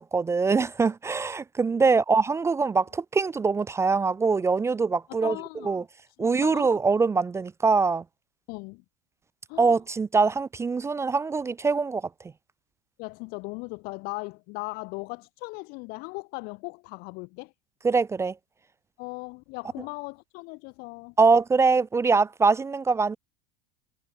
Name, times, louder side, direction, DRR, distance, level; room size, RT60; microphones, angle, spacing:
voice 1, 0.0-5.4 5.6-5.8 6.2-8.0 9.6-12.0 17.8-18.3 21.2-23.2, right 4 dB, 15° right, 0.5 m, -23 dB
voice 2, 5.2-5.8 6.2-6.6 8.5-8.8 9.5-9.8 13.0-17.5 19.0-21.1, left 28 dB, 45° left, 0.8 m, -38 dB
figure-of-eight pair, 80°, 21 cm